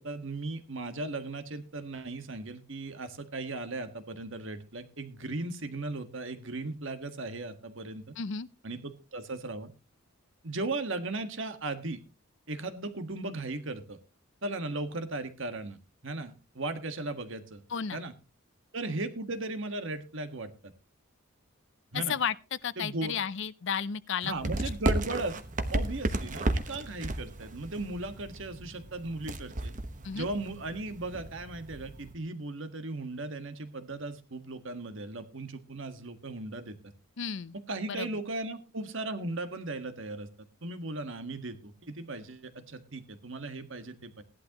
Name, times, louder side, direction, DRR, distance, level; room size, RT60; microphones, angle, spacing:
voice 1, 0.0-8.0 8.6-9.7 10.4-12.0 12.5-14.0 14.4-15.8 16.0-17.6 17.9-18.1 18.7-20.5 21.9-22.1 22.8-23.2 24.2-25.4 25.7-29.7 30.1-36.8 37.7-40.3 40.6-44.2, right 2 dB, 60° right, 1.6 m, -37 dB
voice 2, 8.2-8.5 17.7-18.0 21.9-24.3 30.0-30.3 37.2-37.5 37.8-38.1, left 7 dB, 60° left, 0.6 m, -33 dB
sound 1, 24.3-32.1, right 1 dB, 40° right, 1.1 m, -34 dB
17.0 x 11.5 x 3.0 m
head